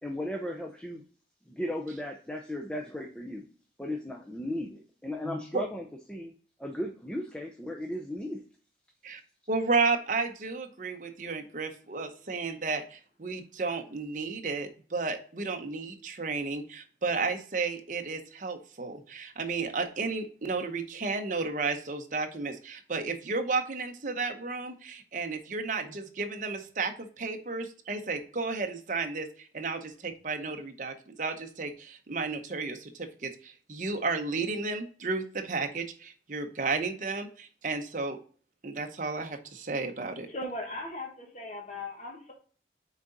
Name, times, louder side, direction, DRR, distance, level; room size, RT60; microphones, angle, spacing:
voice 1, 0.0-1.0 1.5-3.4 3.8-6.3 6.6-8.4, left 1 dB, 5° left, 1 dB, 0.5 m, -36 dB
voice 2, 5.2-5.6 9.0-9.2 9.5-38.2 38.6-40.3, right 4 dB, 45° right, 5 dB, 0.8 m, -33 dB
voice 3, 40.3-42.3, left 1 dB, 40° left, 0 dB, 1.3 m, -38 dB
6.1 x 4.0 x 3.9 m, 0.43 s
head